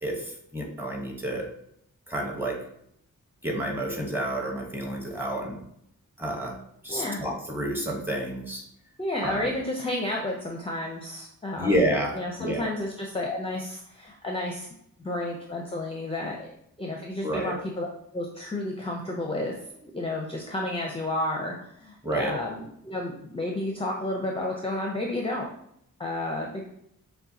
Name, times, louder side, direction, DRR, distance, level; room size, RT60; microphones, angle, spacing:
voice 1, 0.0-1.5 2.1-2.6 3.4-5.6 6.2-6.6 6.8-8.6 9.2-9.5 11.6-12.7 17.2-17.6 22.0-22.4, right 1 dB, 5° right, 1 dB, 1.0 m, -29 dB
voice 2, 6.9-7.2 9.0-11.8 12.1-14.7 15.0-16.5 16.8-17.9 18.1-25.5 26.0-26.7, left 1 dB, 15° left, 0 dB, 0.6 m, -31 dB
6.5 x 2.2 x 2.8 m, 0.72 s
cardioid pair, 70°, 36 cm